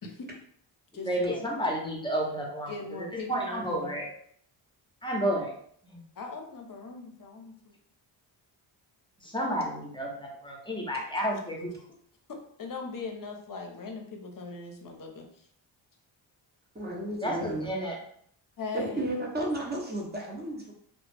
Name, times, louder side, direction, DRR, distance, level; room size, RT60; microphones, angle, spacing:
voice 1, 0.0-0.3 0.9-1.5 2.7-4.0 6.2-7.5 12.6-15.3 18.6-19.1, left 4 dB, 40° left, 3 dB, 0.7 m, -39 dB
voice 2, 0.9-4.1 5.0-5.6 5.8-6.0 9.2-11.7 17.2-18.0, equal, 10° left, -1 dB, 0.8 m, -31 dB
voice 3, 16.7-17.7 18.7-20.7, right 1 dB, 20° right, -1 dB, 0.8 m, -33 dB
2.3 x 2.1 x 3.3 m, 0.62 s
cardioid pair, 55°, 49 cm